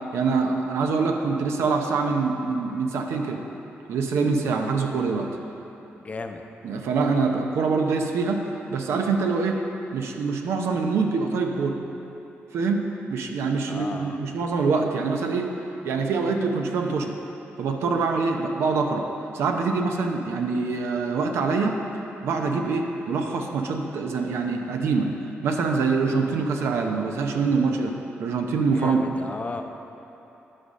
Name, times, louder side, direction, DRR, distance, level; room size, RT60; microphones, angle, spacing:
voice 1, 0.1-3.4 3.9-5.3 6.6-9.6 9.9-11.8 12.5-15.5 15.8-17.2 17.6-19.1 19.3-21.8 22.2-25.1 25.4-29.0, right 4 dB, 90° right, 3 dB, 0.7 m, -25 dB
voice 2, 5.9-6.4 13.7-14.2 28.7-29.6, left 3 dB, 30° left, 5 dB, 0.6 m, -34 dB
11.0 x 4.1 x 6.4 m, 3.0 s
cardioid pair, 95°, 4 cm